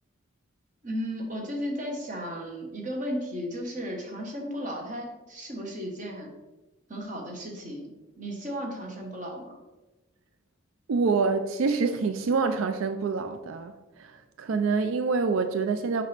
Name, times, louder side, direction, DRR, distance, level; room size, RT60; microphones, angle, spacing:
voice 1, 0.8-6.3 6.9-9.6, equal, 40° right, 0 dB, 1.2 m, -35 dB
voice 2, 10.9-16.0, right 4 dB, 85° right, 8 dB, 0.4 m, -26 dB
6.4 x 5.3 x 3.3 m, 1.1 s
head